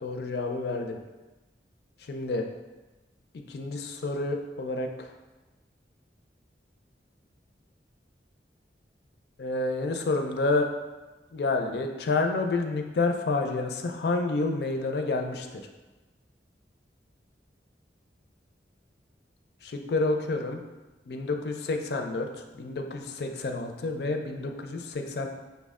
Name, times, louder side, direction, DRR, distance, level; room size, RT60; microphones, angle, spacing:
voice 1, 0.0-1.0 2.1-2.4 3.5-5.1 9.4-10.7 11.3-15.6 19.6-20.6 21.1-22.3 22.5-25.3, left 3 dB, 65° left, 4 dB, 0.4 m, -29 dB
5.7 x 2.1 x 3.5 m, 1.2 s
head